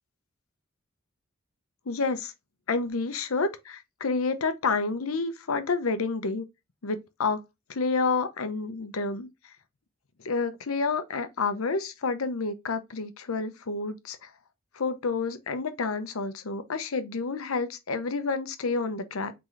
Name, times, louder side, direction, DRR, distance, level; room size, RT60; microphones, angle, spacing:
voice 1, 1.9-2.3 2.7-6.5 6.8-7.4 7.7-9.3 10.2-14.3 14.7-19.3, left 4 dB, 85° left, 0.7 m, -29 dB
3.9 x 3.8 x 3.1 m
head